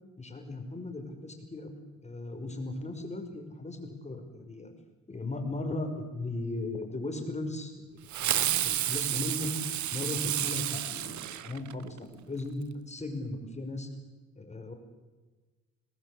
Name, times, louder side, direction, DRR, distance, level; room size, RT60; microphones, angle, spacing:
voice 1, 0.2-1.7 2.0-4.7 5.1-7.9 8.2-9.5 9.9-13.9 14.4-14.7, left 2 dB, 20° left, 5 dB, 5.6 m, -37 dB
Fireworks, 8.1-12.0, right 12 dB, 70° right, 1.1 m, -31 dB
26.0 x 20.0 x 8.1 m, 1.3 s
cardioid pair, 90°, 30 cm